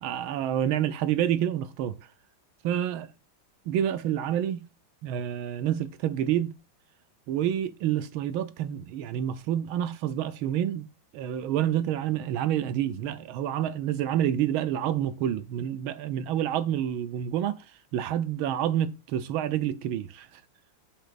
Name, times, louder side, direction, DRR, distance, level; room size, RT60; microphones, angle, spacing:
voice 1, 0.0-2.0 2.6-3.1 3.7-4.7 5.0-6.5 7.3-10.9 11.1-17.6 17.9-20.3, right 10 dB, 85° right, 1.6 m, -28 dB
11.5 x 6.6 x 2.5 m
omnidirectional pair, 2.2 m